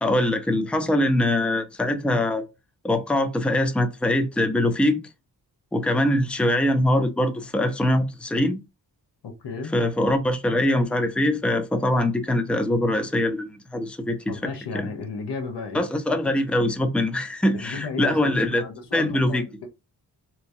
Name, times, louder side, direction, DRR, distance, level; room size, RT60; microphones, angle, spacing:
voice 1, 0.0-2.4 2.8-5.0 5.7-8.6 9.7-14.4 14.7-14.9 15.7-18.6 18.9-19.4, left 1 dB, 5° left, 0.5 m, -23 dB
voice 2, 9.2-9.8 14.3-15.8 17.5-19.7, left 4 dB, 85° left, 0.9 m, -33 dB
3.4 x 2.9 x 2.6 m
cardioid pair, 70°, 39 cm